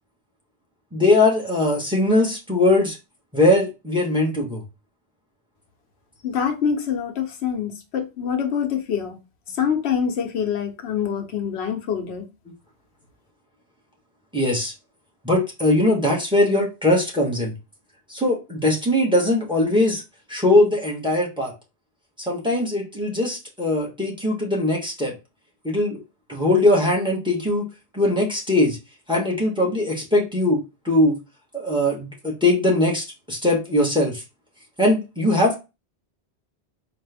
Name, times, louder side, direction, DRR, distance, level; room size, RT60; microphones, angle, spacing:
voice 1, 0.9-3.0 3.3-4.6 14.3-14.7 15.2-17.5 18.1-20.0 20.3-21.5 22.3-25.1 25.6-26.0 26.3-27.6 27.9-28.8 29.1-31.2 31.5-34.2 34.8-35.6, left 1 dB, 5° right, 1.2 m, -20 dB
voice 2, 6.2-9.2 9.6-12.2, left 7 dB, 85° left, 1.0 m, -25 dB
4.3 x 2.5 x 3.4 m
omnidirectional pair, 1.1 m